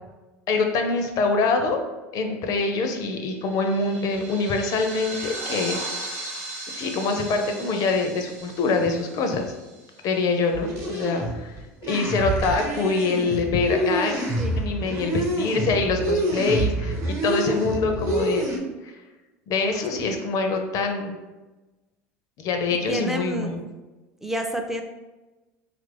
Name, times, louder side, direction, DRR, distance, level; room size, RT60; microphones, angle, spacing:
voice 1, 0.5-1.8 2.1-5.8 6.7-9.5 10.0-11.5 11.9-14.1 14.6-18.5 18.8-18.9 19.5-21.1 22.4-23.6, left 3 dB, 55° left, 5 dB, 0.5 m, -24 dB
sound 1, 3.2-10.1, right 2 dB, 85° right, 0.9 m, -37 dB
sound 2, 10.5-18.6, right 1 dB, 35° right, 0.9 m, -27 dB
voice 2, 22.9-23.6 24.2-24.8, right 1 dB, 5° right, 3 dB, 0.4 m, -28 dB
3.0 x 2.5 x 3.3 m, 1.1 s
hypercardioid pair, 85°, 7 cm